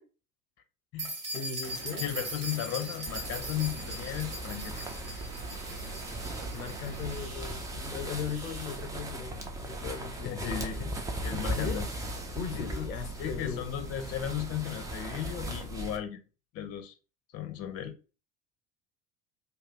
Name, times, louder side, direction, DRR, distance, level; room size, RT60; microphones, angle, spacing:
sound 1, 1.0-8.8, right 1 dB, 85° right, 0.8 m, -41 dB
voice 1, 1.3-2.1 6.5-10.7 11.5-11.8 12.3-13.7, left 6 dB, 90° left, 0.6 m, -38 dB
sound 2, 1.6-7.3, right 4 dB, 60° right, 1.0 m, -46 dB
voice 2, 2.0-5.0 10.2-10.9 11.2-11.9 12.5-12.9 13.2-16.2 16.5-16.9 17.3-17.9, left 11 dB, 35° left, 0.6 m, -35 dB
sound 3, 3.1-16.0, right 1 dB, 10° right, 0.3 m, -38 dB
2.5 x 2.2 x 3.5 m
figure-of-eight pair, 65°, 43 cm